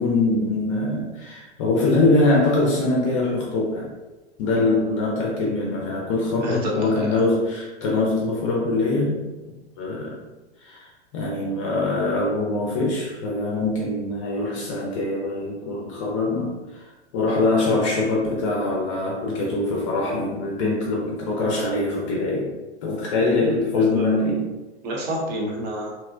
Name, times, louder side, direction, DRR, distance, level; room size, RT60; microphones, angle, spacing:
voice 1, 0.0-3.9 4.4-9.2 9.8-10.1 10.6-16.9 17.1-22.5 22.8-24.5, left 2 dB, 30° left, -3 dB, 0.5 m, -23 dB
voice 2, 6.4-7.2 23.9-24.2 24.8-25.9, equal, 40° right, -3 dB, 0.8 m, -28 dB
2.8 x 2.0 x 2.4 m, 1.2 s
figure-of-eight pair, 100°, 34 cm